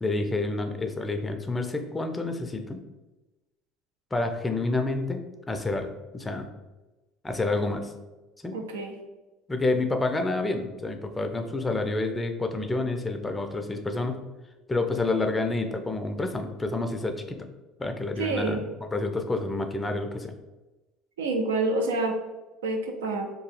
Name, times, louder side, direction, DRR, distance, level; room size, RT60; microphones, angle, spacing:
voice 1, 0.0-2.8 4.1-6.5 7.2-7.9 8.4-8.5 9.5-14.2 14.7-17.2 17.8-18.6 18.9-20.3, left 2 dB, 20° left, 6 dB, 0.4 m, -28 dB
voice 2, 8.5-8.9 18.2-18.6 21.2-22.2 22.6-23.3, right 2 dB, 80° right, 3 dB, 0.4 m, -27 dB
2.8 x 2.2 x 3.1 m, 1.1 s
hypercardioid pair, 65°, 0 cm